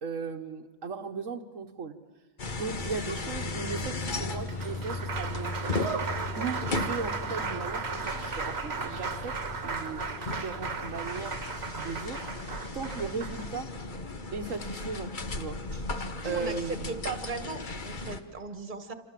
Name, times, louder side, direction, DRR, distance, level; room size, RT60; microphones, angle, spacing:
voice 1, 0.0-1.9 2.6-5.7 6.3-9.3 9.6-13.7 14.3-15.6 16.2-17.0, right 5 dB, 80° right, 5 dB, 1.6 m, -37 dB
sound 1, 2.4-18.2, left 3 dB, 40° left, 1.4 m, -36 dB
Applause, 3.7-14.0 15.3-15.4 15.7-16.7, right 5 dB, 55° right, 1.6 m, -36 dB
voice 2, 16.2-18.9, right 4 dB, 40° right, 8 dB, 1.8 m, -37 dB
28.0 x 27.0 x 7.6 m, 1.2 s
omnidirectional pair, 1.3 m